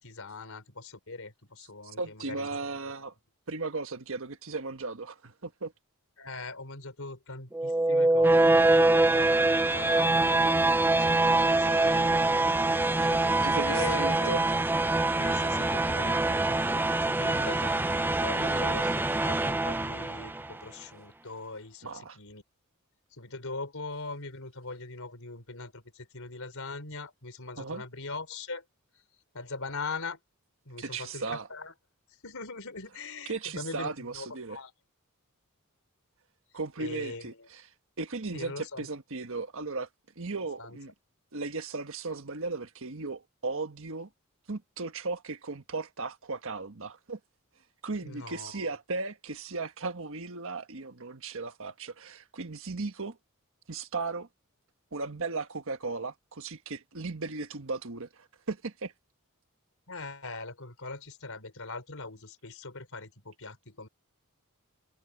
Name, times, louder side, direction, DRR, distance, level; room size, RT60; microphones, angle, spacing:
voice 1, 0.0-2.6 6.2-14.4 15.2-18.9 19.2-22.4 23.2-28.6 29.3-30.2 30.6-31.7 32.2-34.7 36.8-37.3 38.3-38.9 40.6-40.8 48.0-48.7 59.9-63.9, left 3 dB, 65° left, 4.7 m, -41 dB
voice 2, 2.0-3.1 3.5-5.7 13.1-14.6 18.4-18.8 21.8-22.2 27.6-27.8 30.8-31.5 33.3-34.6 36.5-37.7 38.0-39.9 40.1-40.9 41.3-44.1 44.5-47.2 47.8-53.2 53.7-54.3 54.9-58.9, right 3 dB, 65° right, 1.5 m, -36 dB
sound 1, 7.5-20.5, right 2 dB, 10° right, 0.6 m, -24 dB
head